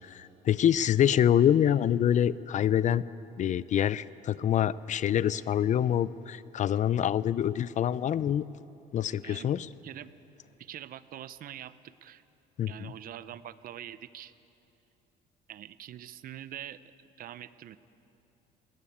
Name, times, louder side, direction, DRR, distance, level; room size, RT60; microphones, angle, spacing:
voice 1, 0.0-3.0 3.4-8.4 8.9-9.7 12.6-12.7, left 10 dB, 45° left, 18 dB, 0.5 m, -26 dB
voice 2, 10.6-12.2 12.7-14.3 15.5-16.8 17.2-17.8, right 11 dB, 60° right, 15 dB, 0.7 m, -44 dB
21.5 x 17.5 x 8.6 m, 3.0 s
cardioid pair, 110°, 17 cm